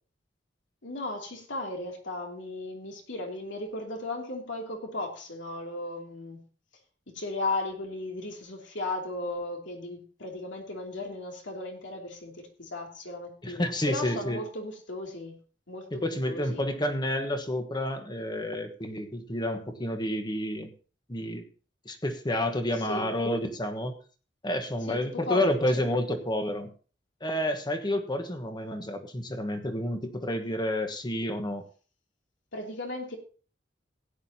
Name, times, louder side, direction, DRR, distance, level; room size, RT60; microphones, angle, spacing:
voice 1, 0.8-6.5 7.1-15.4 15.7-16.6 22.9-23.1 24.9-25.8 32.5-33.2, left 2 dB, 75° left, 1 dB, 2.9 m, -36 dB
voice 2, 13.4-14.4 16.0-20.7 21.1-21.4 21.8-24.0 24.4-26.7 27.2-31.6, left 1 dB, 25° left, 7 dB, 1.3 m, -30 dB
16.0 x 10.0 x 2.9 m, 0.39 s
head